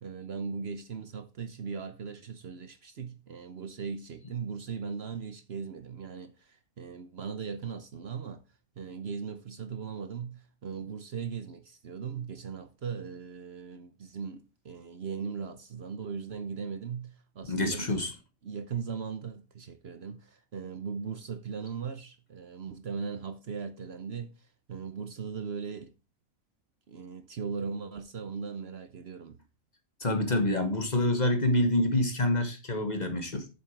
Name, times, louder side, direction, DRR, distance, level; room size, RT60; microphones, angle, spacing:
voice 1, 0.0-8.4 8.8-17.9 18.4-24.3 24.7-25.9 26.9-29.4, right 6 dB, 55° right, 1.0 m, -38 dB
voice 2, 17.5-18.1 30.0-33.5, left 1 dB, 35° left, 1.4 m, -27 dB
8.8 x 7.0 x 4.5 m
omnidirectional pair, 1.4 m